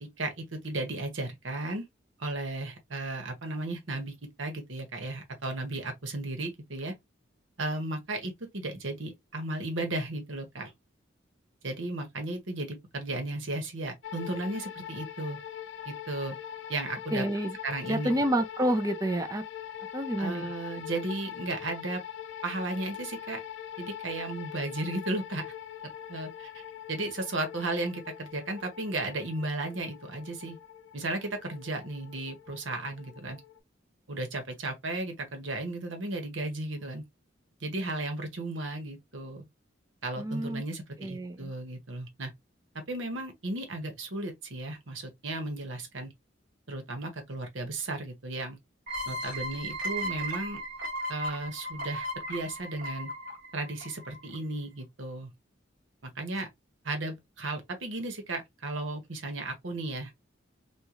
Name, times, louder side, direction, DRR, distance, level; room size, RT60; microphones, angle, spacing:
voice 1, 0.0-1.8 2.2-6.9 7.6-10.7 11.6-15.4 15.8-16.4 16.7-17.3 17.6-18.4 20.2-22.0 22.4-23.4 23.8-25.5 26.1-26.6 26.9-30.6 30.9-33.4 34.1-37.0 37.6-39.4 40.0-42.3 42.7-46.1 46.7-48.6 49.1-50.6 51.1-53.1 53.5-55.3 56.0-56.5 56.8-60.1, right 2 dB, 75° right, 1.2 m, -35 dB
sound 1, 14.0-33.6, left 10 dB, 70° left, 0.5 m, -43 dB
voice 2, 17.1-17.6 17.9-19.4 19.9-20.5 40.2-40.6 41.0-41.5, right 1 dB, 20° right, 0.5 m, -29 dB
sound 2, 48.9-54.4, right 1 dB, 45° right, 1.3 m, -36 dB
3.7 x 2.5 x 3.0 m
head